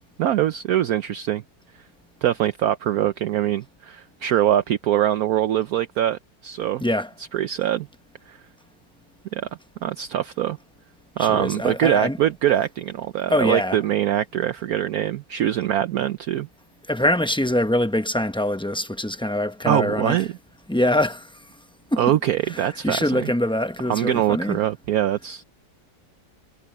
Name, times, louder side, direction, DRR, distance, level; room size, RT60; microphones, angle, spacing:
voice 1, 0.0-1.4 2.2-6.8 7.3-7.9 8.3-8.4 9.3-9.5 9.8-10.6 11.2-16.5 19.7-20.3 22.0-23.3 23.9-25.4, right 11 dB, 65° right, 1.0 m, -23 dB
voice 2, 6.8-7.1 11.2-12.2 13.3-13.8 16.9-20.2 20.7-21.3 21.9-22.0 22.5-24.6, left 1 dB, 5° left, 0.4 m, -23 dB
omnidirectional pair, 1.9 m